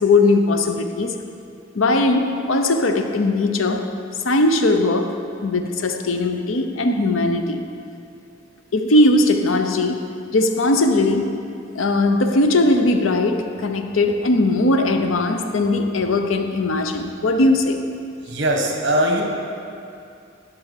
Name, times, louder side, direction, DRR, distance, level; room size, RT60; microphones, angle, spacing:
voice 1, 0.0-1.1 1.7-7.7 8.7-11.4 11.7-17.8, left 2 dB, 90° left, 6 dB, 0.7 m, -19 dB
voice 2, 18.2-19.2, right 1 dB, 60° right, 1 dB, 1.4 m, -20 dB
11.5 x 4.9 x 6.6 m, 2.5 s
head